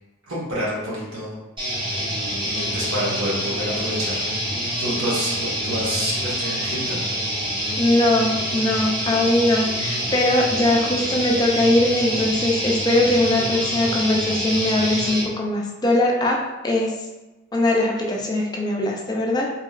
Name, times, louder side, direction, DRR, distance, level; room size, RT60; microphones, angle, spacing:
voice 1, 0.2-1.4 1.7-1.8 2.4-4.3 4.8-7.0, equal, 80° right, -6 dB, 1.1 m, -28 dB
sound 1, 1.6-15.3, equal, 25° right, 0.8 m, -26 dB
voice 2, 7.8-16.9 17.5-19.5, left 1 dB, 20° left, 0 dB, 0.3 m, -21 dB
2.9 x 2.7 x 2.4 m, 1.1 s
head